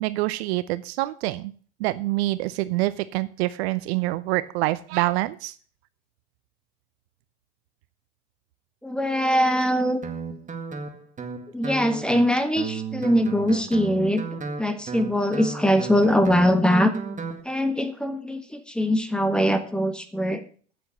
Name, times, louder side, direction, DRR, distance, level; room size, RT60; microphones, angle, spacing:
voice 1, 0.0-1.5 1.8-5.5, right 18 dB, 60° right, 16 dB, 0.7 m, -26 dB
voice 2, 8.8-10.0 11.5-14.2 14.6-16.9 17.4-20.4, equal, ahead, 8 dB, 1.5 m, -22 dB
Guitar, 10.0-17.4, right 5 dB, 20° right, 1.9 m, -34 dB
9.0 x 7.7 x 6.5 m, 0.43 s
hypercardioid pair, 90°, 36 cm